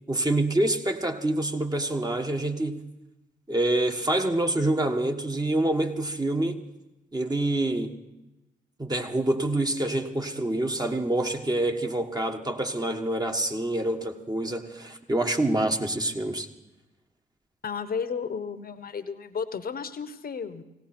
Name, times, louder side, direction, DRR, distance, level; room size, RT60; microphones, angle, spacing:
voice 1, 0.1-2.8 3.5-6.6 7.1-7.9 8.8-16.5, right 1 dB, 20° right, 4 dB, 1.7 m, -26 dB
voice 2, 17.6-20.6, left 6 dB, 55° left, 11 dB, 1.2 m, -33 dB
18.5 x 17.0 x 4.5 m, 0.98 s
supercardioid pair, 45°, 18 cm